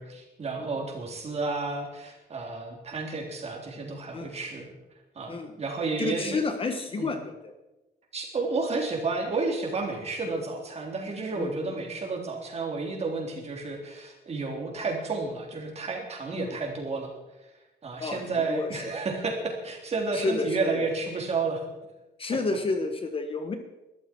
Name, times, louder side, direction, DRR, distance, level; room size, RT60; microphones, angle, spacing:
voice 1, 0.0-4.7 5.2-6.4 7.0-7.1 8.1-17.1 17.8-21.6, right 3 dB, 35° right, 1 dB, 3.7 m, -31 dB
voice 2, 6.0-7.5 11.4-11.7 16.3-16.6 18.0-18.2 18.5-18.8 20.1-20.8 22.2-23.6, left 3 dB, 30° left, 7 dB, 1.3 m, -30 dB
21.5 x 13.5 x 4.7 m, 1.0 s
cardioid pair, 170°, 19 cm